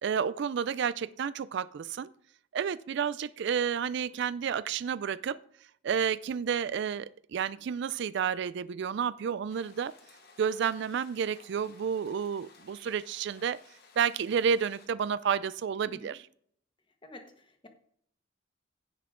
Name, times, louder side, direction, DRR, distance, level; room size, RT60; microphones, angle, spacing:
voice 1, 0.0-2.1 2.5-5.4 5.8-9.9 10.4-13.6 14.0-16.2, right 7 dB, 60° right, 17 dB, 0.3 m, -30 dB
sound 1, 9.5-14.9, left 4 dB, 50° left, 1.6 m, -57 dB
voice 2, 15.8-16.2 17.0-17.7, left 1 dB, 25° left, 6 dB, 1.3 m, -50 dB
16.0 x 5.8 x 3.7 m, 0.64 s
head